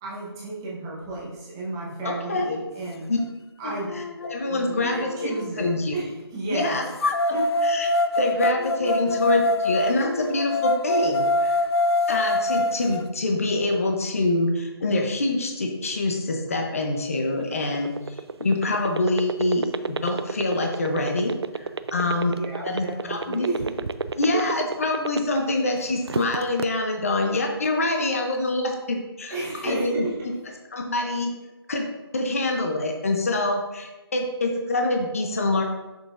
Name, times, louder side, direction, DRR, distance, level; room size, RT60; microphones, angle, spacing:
voice 1, 0.0-3.0 3.6-4.0 4.5-6.9 7.3-7.4 22.0-23.7 29.3-30.1, right 2 dB, 10° right, -7 dB, 0.9 m, -32 dB
voice 2, 2.0-2.6 3.1-3.2 3.6-3.7 4.3-5.3 5.6-5.9 6.5-7.1 7.6-11.6 12.1-23.5 24.2-29.4 29.6-30.1 30.7-31.3 31.7-35.6, left 2 dB, 35° left, 3 dB, 0.7 m, -25 dB
sound 1, 3.2-3.3 3.9-5.8 7.0-13.0, left 2 dB, 70° left, 0.4 m, -25 dB
sound 2, 17.3-25.5 25.9-26.7, right 4 dB, 75° right, 0.4 m, -29 dB
8.2 x 6.4 x 2.5 m, 1.1 s
figure-of-eight pair, 175°, 14 cm